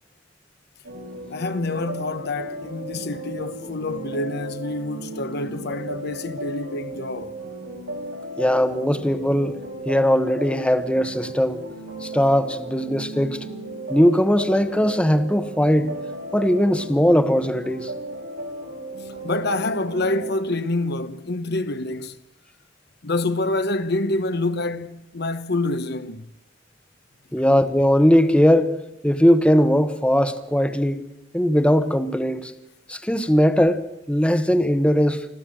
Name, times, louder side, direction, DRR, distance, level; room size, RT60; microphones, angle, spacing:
sound 1, 0.8-20.3, right 1 dB, 90° right, 8.0 m, -35 dB
voice 1, 1.3-7.3 19.0-22.2 23.0-26.3, left 2 dB, 60° left, 1.0 m, -27 dB
voice 2, 8.4-9.6 9.9-11.6 12.0-13.4 13.9-15.9 16.3-17.9 27.3-28.8 29.0-31.0 31.3-32.5 32.9-35.2, equal, 5° left, 1.0 m, -19 dB
25.5 x 15.0 x 7.7 m
head